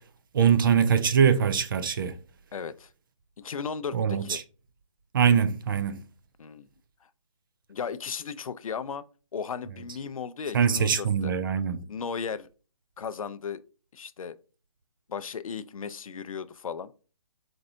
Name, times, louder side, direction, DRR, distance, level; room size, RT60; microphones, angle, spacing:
voice 1, 0.3-2.2 3.9-4.4 5.1-6.0 10.5-11.9, right 7 dB, 40° right, 0.4 m, -23 dB
voice 2, 2.5-2.9 3.4-4.4 6.4-6.7 7.7-9.0 9.3-11.3 11.9-12.5 13.0-13.6 13.9-14.4 15.1-16.9, left 6 dB, 80° left, 0.4 m, -35 dB
4.4 x 3.9 x 2.6 m
hypercardioid pair, 150°, 18 cm